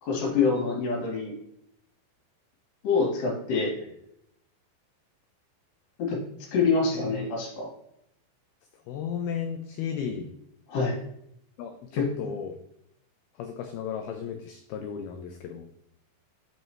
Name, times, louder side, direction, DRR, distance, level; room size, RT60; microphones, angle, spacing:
voice 1, 0.0-1.4 2.8-3.7 6.0-6.2 6.5-7.7 10.7-11.0 11.9-12.1, left 4 dB, 70° left, -2 dB, 3.9 m, -26 dB
voice 2, 6.9-7.3 8.9-10.3 11.6-12.6 13.4-15.7, left 7 dB, 90° left, 5 dB, 2.1 m, -34 dB
8.5 x 5.5 x 3.0 m, 0.76 s
omnidirectional pair, 5.2 m